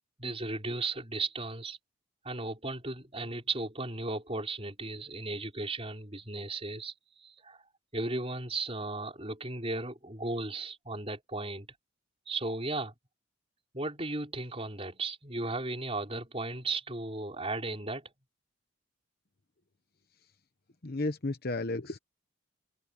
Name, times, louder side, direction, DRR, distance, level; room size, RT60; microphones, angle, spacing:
voice 1, 0.2-1.8 2.2-7.6 7.9-11.7 12.3-12.9 13.7-18.1, right 2 dB, 30° right, 4.8 m, -35 dB
voice 2, 20.8-22.0, left 2 dB, 45° left, 1.0 m, -33 dB
open air
head